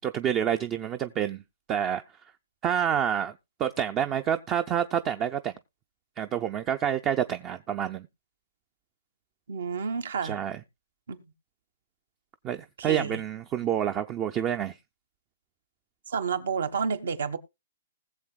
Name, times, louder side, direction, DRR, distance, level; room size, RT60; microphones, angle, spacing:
voice 1, 0.0-1.4 1.7-2.0 2.6-3.3 3.6-5.5 6.2-8.1 10.2-10.6 12.4-14.8, right 9 dB, 25° right, 0.5 m, -28 dB
voice 2, 9.5-10.4 11.1-11.2 12.8-13.2 16.1-17.4, right 6 dB, 75° right, 1.4 m, -30 dB
20.0 x 7.4 x 2.3 m
hypercardioid pair, 150°, 0 cm